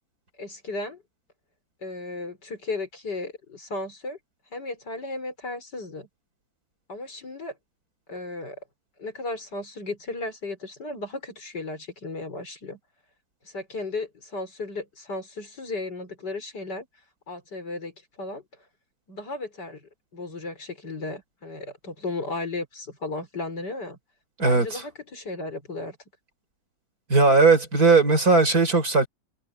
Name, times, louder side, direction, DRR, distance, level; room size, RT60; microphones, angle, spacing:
voice 1, 0.4-1.0 1.8-4.2 4.5-6.1 6.9-7.6 8.1-8.6 9.0-12.8 13.4-16.9 17.3-18.4 19.1-24.0 24.4-26.0, left 2 dB, 65° left, 6.0 m, -35 dB
voice 2, 24.4-24.8 27.1-29.1, right 4 dB, 55° right, 4.6 m, -18 dB
omnidirectional pair, 1.9 m